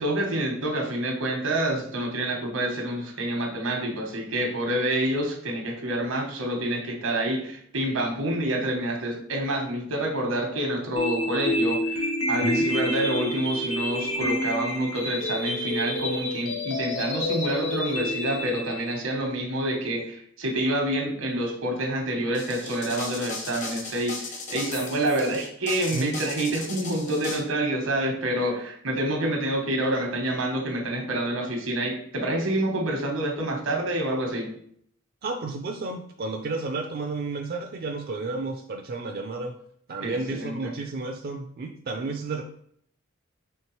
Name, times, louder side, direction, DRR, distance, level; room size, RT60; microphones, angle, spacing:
voice 1, 0.0-24.1 24.5-34.5 40.0-40.7, right 1 dB, 85° right, 1 dB, 1.1 m, -27 dB
sound 1, 11.0-19.0, left 1 dB, 80° left, 1.0 m, -29 dB
sound 2, 22.3-27.4, left 3 dB, 35° left, 0.7 m, -36 dB
voice 2, 35.2-39.5 39.9-42.4, right 3 dB, 45° right, 3 dB, 0.3 m, -32 dB
4.4 x 3.2 x 3.1 m, 0.64 s
head